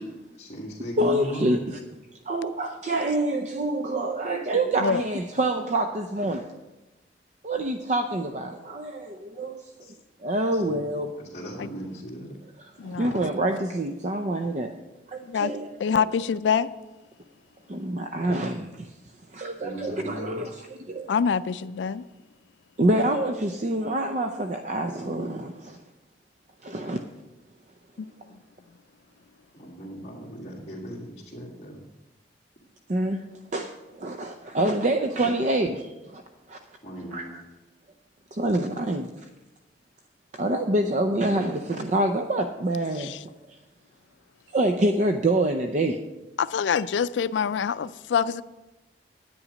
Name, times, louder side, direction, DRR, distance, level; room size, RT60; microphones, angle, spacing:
voice 1, 0.4-1.6 9.8-9.9 10.5-10.8 11.2-12.4 19.6-20.4 29.5-31.8 36.8-37.3, equal, 35° left, 1.9 m, -38 dB
voice 2, 1.0-1.8 2.1-6.5 7.4-9.7 10.2-11.2 12.6-14.7 15.1-16.0 17.7-18.9 19.3-21.1 22.8-25.8 26.6-27.0 32.9-33.2 33.5-36.2 36.5-36.6 37.1-37.4 38.3-39.2 40.3-43.6 44.5-46.0, right 1 dB, 40° right, 0.6 m, -26 dB
voice 3, 12.8-13.2 15.2-15.5 15.8-16.7 21.1-22.1 28.0-28.1 43.0-43.2 46.4-48.4, left 6 dB, 90° left, 0.4 m, -25 dB
10.0 x 9.7 x 5.1 m
head